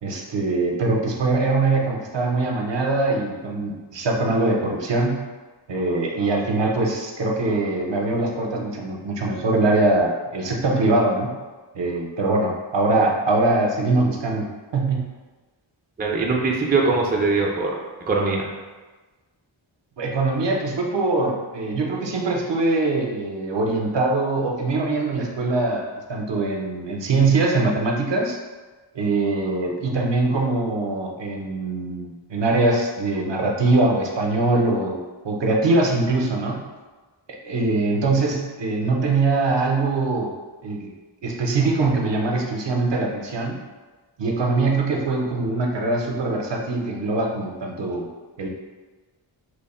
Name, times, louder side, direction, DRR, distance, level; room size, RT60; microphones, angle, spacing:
voice 1, 0.0-5.2 5.7-11.3 11.7-14.5 14.7-15.1 20.0-28.4 28.9-35.0 35.2-36.6 37.3-40.3 40.6-40.9 41.2-43.6 44.2-48.1 48.4-48.5, right 2 dB, 65° right, 0 dB, 0.6 m, -22 dB
voice 2, 16.0-17.8 18.1-18.5, right 3 dB, 20° right, -1 dB, 0.4 m, -21 dB
3.1 x 2.1 x 4.1 m, 1.3 s
wide cardioid pair, 95°, 48 cm